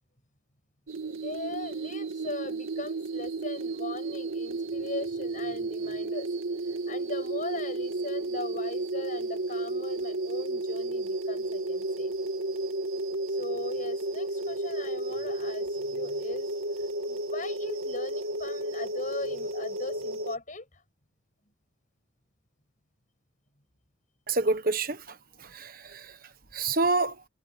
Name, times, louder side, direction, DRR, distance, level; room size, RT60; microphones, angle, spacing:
sound 1, 0.9-20.4, right 2 dB, 85° right, 2.0 m, -32 dB
voice 1, 1.1-6.3 6.6-12.1 13.3-20.8, left 2 dB, 40° left, 7.0 m, -39 dB
voice 2, 24.3-27.2, right 3 dB, 45° right, 1.3 m, -29 dB
head